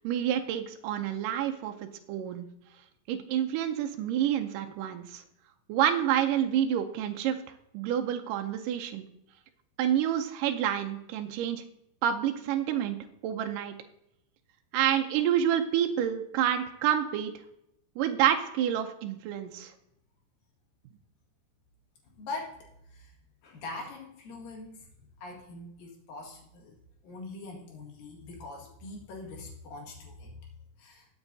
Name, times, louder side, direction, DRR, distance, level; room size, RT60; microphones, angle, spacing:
voice 1, 0.0-1.7 2.1-2.5 3.1-5.2 5.7-7.4 7.7-9.1 9.8-11.6 12.0-13.0 13.2-13.7 14.7-17.3 18.0-19.7, right 10 dB, 80° right, 5 dB, 2.3 m, -28 dB
voice 2, 22.0-23.1 23.4-24.9 25.2-26.8 27.0-30.5 30.8-31.1, left 2 dB, 90° left, 0 dB, 3.7 m, -43 dB
20.5 x 7.1 x 2.7 m, 0.80 s
omnidirectional pair, 3.8 m